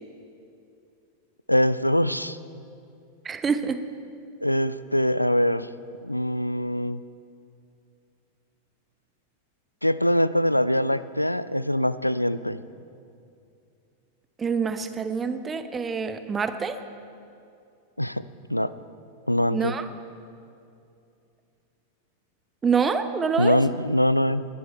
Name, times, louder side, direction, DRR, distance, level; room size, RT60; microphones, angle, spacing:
voice 1, 1.5-2.4 4.4-5.7 6.0-7.0 9.8-12.6 18.0-18.2 18.5-18.7 19.3-19.7 23.4-24.5, equal, 90° left, 16 dB, 0.4 m, -23 dB
voice 2, 3.2-3.8 14.4-16.8 19.5-19.9 22.6-23.6, right 5 dB, 20° right, 10 dB, 0.8 m, -26 dB
20.5 x 11.0 x 4.5 m, 2.6 s
figure-of-eight pair, 90°, 0 cm